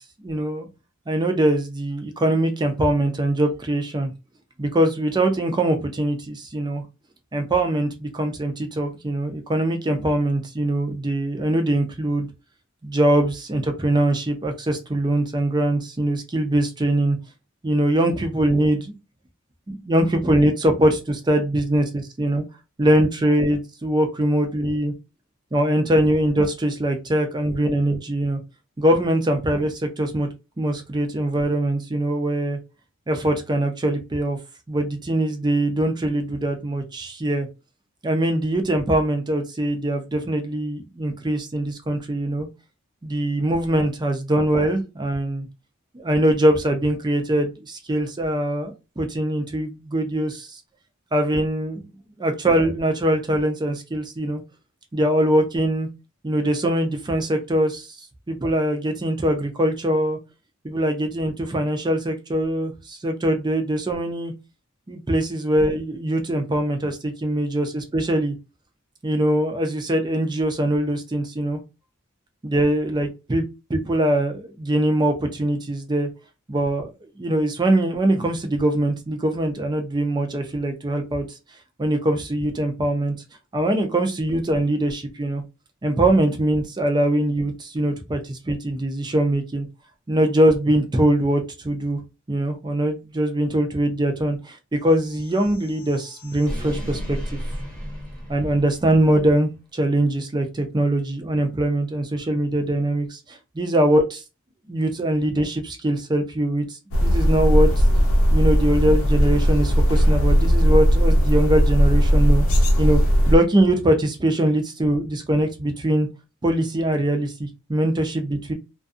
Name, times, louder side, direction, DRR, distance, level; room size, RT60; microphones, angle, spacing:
voice 1, 0.2-0.7 1.1-4.1 4.6-6.8 7.3-12.3 12.8-17.2 17.6-18.9 19.7-22.4 22.8-24.9 25.5-28.4 28.8-30.3 30.6-32.6 33.1-34.4 34.7-37.5 38.0-42.5 43.0-45.5 45.9-50.6 51.1-51.8 52.2-54.4 54.9-55.9 56.2-58.0 58.3-60.2 60.6-64.3 64.9-68.3 69.0-71.6 72.4-73.4 73.7-76.1 76.5-76.9 77.2-81.2 81.8-83.1 83.5-85.4 85.8-89.7 90.1-92.0 92.3-97.4 98.3-104.2 104.7-106.6 107.0-107.7 108.3-113.0 113.3-116.1 116.4-118.5, right 1 dB, 20° right, 5 dB, 0.5 m, -22 dB
sound 1, 94.9-99.2, equal, 5° left, 0.8 m, -34 dB
sound 2, 106.9-113.4, equal, 80° left, 0.7 m, -17 dB
2.4 x 2.2 x 2.5 m, 0.27 s
head